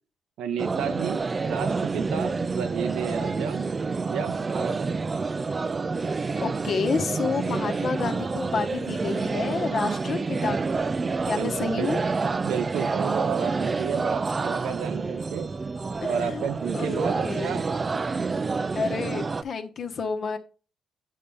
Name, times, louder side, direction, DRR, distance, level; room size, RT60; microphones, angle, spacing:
voice 1, 0.4-3.7 4.1-5.0 11.3-11.9 12.4-15.5 16.1-17.8, right 8 dB, 85° right, 0.6 m, -32 dB
sound 1, 0.6-19.4, right 4 dB, 30° right, 0.4 m, -28 dB
voice 2, 6.4-10.8 11.3-12.0 16.0-16.5 16.7-17.5 18.7-20.4, left 5 dB, 55° left, 1.0 m, -30 dB
8.4 x 5.5 x 3.5 m
cardioid pair, 90°, 0 cm